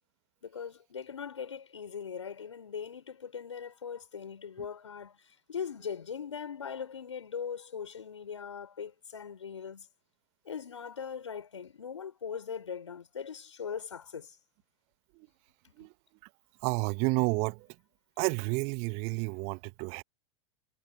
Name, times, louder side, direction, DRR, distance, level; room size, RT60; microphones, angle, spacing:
voice 1, 0.4-9.9 10.4-14.4 15.6-15.9, left 7 dB, 75° left, 4.9 m, -40 dB
voice 2, 16.6-17.7 18.2-20.0, right 30 dB, 45° right, 1.9 m, -30 dB
figure-of-eight pair, 100°, 15 cm